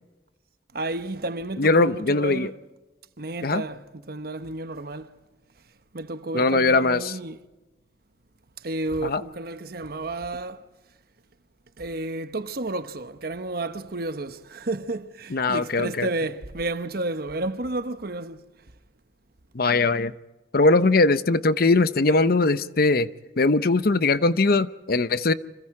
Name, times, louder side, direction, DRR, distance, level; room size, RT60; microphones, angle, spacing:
voice 1, 0.7-2.6 3.2-5.1 5.9-7.4 8.6-10.6 11.8-18.4 21.1-21.2, right 2 dB, 60° right, 1.1 m, -31 dB
voice 2, 1.6-2.5 3.4-3.6 6.3-7.1 9.0-9.2 15.3-16.1 19.5-20.1 20.5-23.1 23.4-25.3, left 3 dB, 60° left, 0.8 m, -20 dB
29.0 x 26.0 x 4.9 m
head